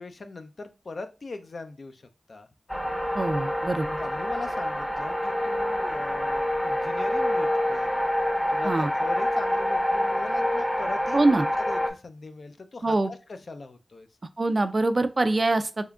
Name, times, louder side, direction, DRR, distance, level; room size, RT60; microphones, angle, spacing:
voice 1, 0.0-2.5 4.0-7.9 8.5-11.2 11.6-14.1, left 3 dB, 65° left, 8 dB, 0.4 m, -40 dB
sound 1, 2.7-11.9, left 1 dB, 5° left, 0.6 m, -27 dB
voice 2, 3.1-3.9 8.6-8.9 11.1-11.5 12.8-13.1 14.4-15.9, right 2 dB, 45° right, 10 dB, 0.4 m, -24 dB
3.6 x 3.5 x 2.2 m, 0.29 s
cardioid pair, 50°, 0 cm